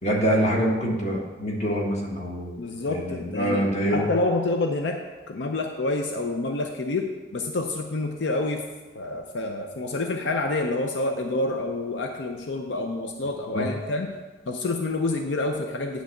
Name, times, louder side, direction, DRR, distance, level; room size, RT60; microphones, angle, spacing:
voice 1, 0.0-2.6 2.9-4.0 13.5-13.7, equal, 40° left, -2 dB, 1.5 m, -25 dB
voice 2, 2.6-8.7 8.9-14.2 14.5-16.0, left 2 dB, 85° left, 3 dB, 0.6 m, -28 dB
9.4 x 3.3 x 6.5 m, 1.2 s
head